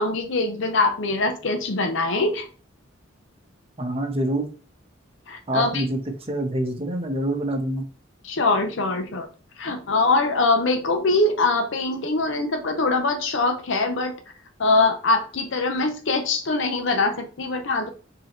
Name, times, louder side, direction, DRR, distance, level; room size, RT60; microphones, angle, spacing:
voice 1, 0.0-2.5 5.3-5.9 8.2-9.3 9.6-14.1 14.6-17.9, left 3 dB, 70° left, 5 dB, 0.6 m, -23 dB
voice 2, 3.8-4.5 5.5-6.0 6.3-7.8, right 1 dB, 30° right, 3 dB, 0.9 m, -26 dB
4.8 x 2.9 x 2.9 m, 0.38 s
head